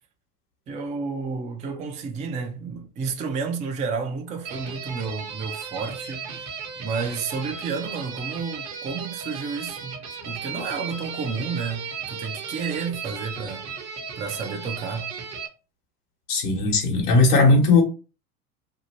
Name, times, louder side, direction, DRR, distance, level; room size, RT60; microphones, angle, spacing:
voice 1, 0.7-6.5 6.8-10.0 10.2-13.6 14.2-15.1, right 5 dB, 20° right, 0.3 m, -31 dB
sound 1, 4.4-15.5, right 6 dB, 35° right, 0.8 m, -35 dB
voice 2, 16.3-17.8, left 3 dB, 90° left, 1.1 m, -18 dB
2.7 x 2.4 x 2.9 m
hypercardioid pair, 90°, 44 cm